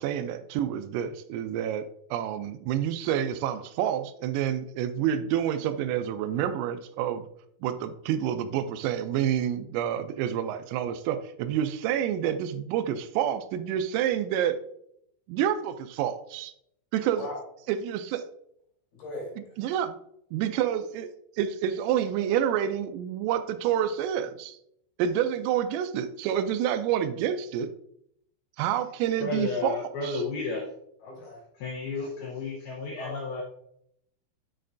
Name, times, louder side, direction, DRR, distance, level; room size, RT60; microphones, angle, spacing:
voice 1, 0.0-1.8 2.1-7.3 7.6-14.6 15.3-16.5 16.9-17.2 17.7-18.2 19.6-20.0 20.3-21.1 21.4-24.6 25.0-27.7 28.6-30.2, right 10 dB, 85° right, 9 dB, 3.2 m, -28 dB
voice 2, 17.1-17.4 18.9-19.6 31.0-31.4 33.0-33.2, left 2 dB, 50° left, -4 dB, 4.6 m, -39 dB
voice 3, 29.2-30.6 31.6-33.4, left 4 dB, 85° left, -3 dB, 2.2 m, -32 dB
8.3 x 6.4 x 2.6 m, 0.72 s
omnidirectional pair, 5.9 m